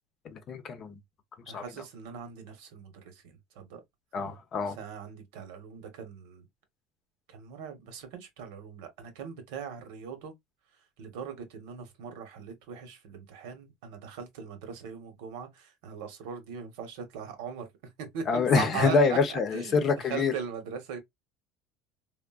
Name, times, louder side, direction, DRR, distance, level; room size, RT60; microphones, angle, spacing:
voice 1, 0.2-1.0 1.5-1.6 4.1-4.8 18.3-20.3, left 4 dB, 40° left, 0.6 m, -26 dB
voice 2, 1.5-3.8 4.6-6.5 7.3-10.3 11.0-17.7 18.0-19.8 20.1-21.0, right 7 dB, 80° right, 1.0 m, -40 dB
3.5 x 2.1 x 2.3 m
supercardioid pair, 130°, 0 cm